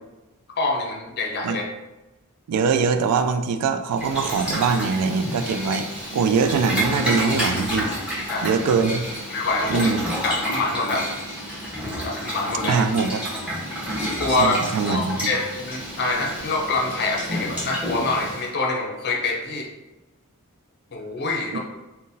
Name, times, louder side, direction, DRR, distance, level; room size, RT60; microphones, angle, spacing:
voice 1, 0.6-1.6 8.3-8.5 9.3-9.9 10.2-11.1 12.0-12.8 14.2-14.6 14.8-19.7 20.9-21.6, left 3 dB, 45° left, 0 dB, 0.6 m, -25 dB
voice 2, 2.5-7.9 8.4-9.0 9.7-10.1 12.7-13.2 14.4-15.2 21.5-21.6, right 5 dB, 90° right, 13 dB, 0.3 m, -22 dB
Boiling, 3.9-18.5, equal, 5° right, 1.0 m, -29 dB
3.8 x 2.2 x 2.6 m, 1.1 s
head